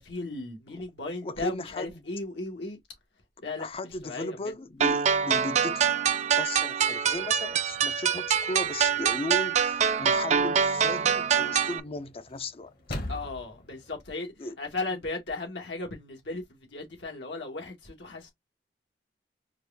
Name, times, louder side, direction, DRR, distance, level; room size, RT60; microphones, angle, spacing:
voice 1, 0.0-2.8 3.4-3.7 4.0-4.4 13.1-16.4 16.7-18.3, left 2 dB, 85° left, 1.7 m, -36 dB
voice 2, 1.2-2.0 3.6-5.8 6.4-12.7 14.4-14.6, left 2 dB, 35° left, 0.5 m, -36 dB
sound 1, 4.8-11.8, right 7 dB, 40° right, 0.4 m, -25 dB
sound 2, 7.1-14.0, left 1 dB, 55° left, 1.3 m, -44 dB
4.6 x 2.5 x 3.4 m
head